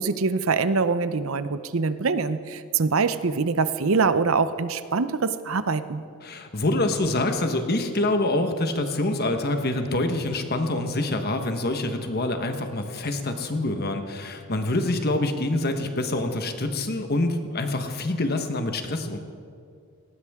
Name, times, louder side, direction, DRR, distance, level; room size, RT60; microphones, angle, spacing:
voice 1, 0.0-6.0, right 4 dB, 65° right, 13 dB, 0.7 m, -24 dB
voice 2, 6.2-19.2, left 2 dB, 45° left, 6 dB, 1.3 m, -26 dB
18.5 x 18.0 x 3.7 m, 2.3 s
head